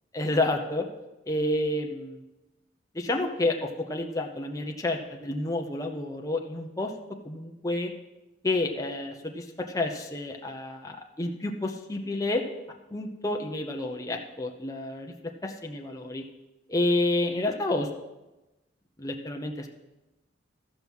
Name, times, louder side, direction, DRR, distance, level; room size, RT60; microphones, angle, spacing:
voice 1, 0.1-0.9 1.3-2.2 2.9-6.9 7.2-7.9 8.4-9.4 9.7-12.4 12.9-15.1 15.4-16.2 16.7-17.9 19.0-19.7, left 2 dB, 20° left, 2 dB, 0.8 m, -29 dB
14.0 x 6.0 x 5.5 m, 1.0 s
head